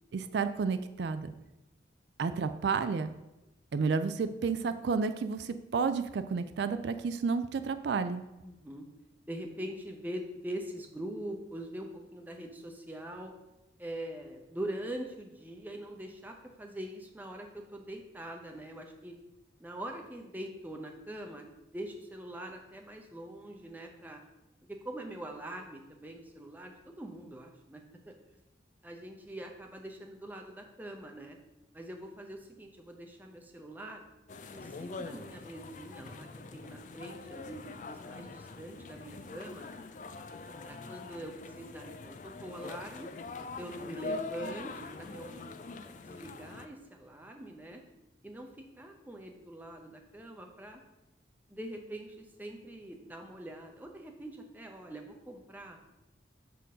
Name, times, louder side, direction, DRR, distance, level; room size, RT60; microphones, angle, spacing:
voice 1, 0.1-1.3 2.2-3.1 3.7-8.2, right 5 dB, 70° right, 11 dB, 0.4 m, -31 dB
voice 2, 8.4-8.9 9.3-13.3 13.8-19.2 19.6-24.2 24.7-28.4 28.8-31.4 31.7-34.0 34.5-39.7 40.6-43.1 43.6-45.5 45.8-47.8 48.2-50.8 51.5-55.8, right 1 dB, 10° right, 2 dB, 0.7 m, -43 dB
sound 1, 34.3-46.7, left 3 dB, 45° left, 0.4 m, -43 dB
6.9 x 3.8 x 6.2 m, 0.96 s
head